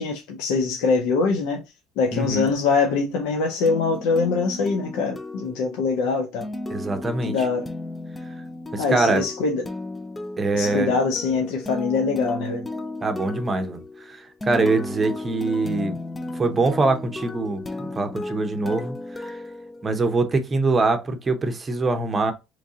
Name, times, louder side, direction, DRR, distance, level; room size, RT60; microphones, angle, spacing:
voice 1, 0.0-1.6 2.0-6.5 7.3-7.7 8.8-9.7 10.5-12.6, left 4 dB, 85° left, 0.6 m, -23 dB
voice 2, 2.1-2.5 6.7-7.4 8.7-9.2 10.4-10.9 13.0-16.0 16.3-19.4 19.8-22.3, right 3 dB, 25° right, 0.7 m, -24 dB
sound 1, 3.7-20.3, left 2 dB, 15° left, 0.4 m, -34 dB
3.1 x 2.6 x 3.7 m
cardioid pair, 120°, 0 cm